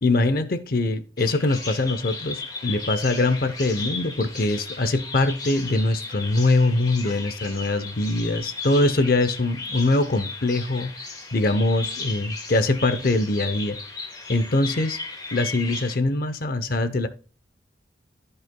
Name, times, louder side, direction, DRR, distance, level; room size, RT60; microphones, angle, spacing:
voice 1, 0.0-10.9 11.3-13.8 14.3-15.0 15.3-17.1, left 2 dB, 55° left, 0.7 m, -23 dB
Bird vocalization bird call bird song, 1.2-16.0, left 3 dB, 25° left, 1.8 m, -36 dB
14.5 x 5.6 x 2.2 m
head